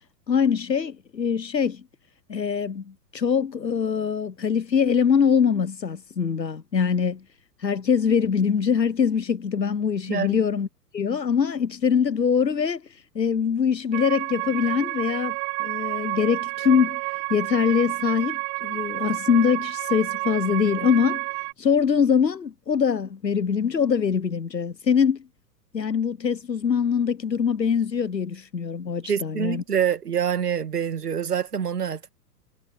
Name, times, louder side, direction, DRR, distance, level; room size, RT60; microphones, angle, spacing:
voice 1, 0.3-1.8 2.3-7.2 7.6-10.7 10.9-12.8 13.1-21.2 21.6-25.2 25.7-29.6, left 7 dB, 85° left, 0.9 m, -23 dB
sound 1, 13.9-21.5, right 40 dB or more, 25° right, 1.3 m, -30 dB
voice 2, 29.0-32.1, right 8 dB, 70° right, 2.1 m, -26 dB
figure-of-eight pair, 110°, 49 cm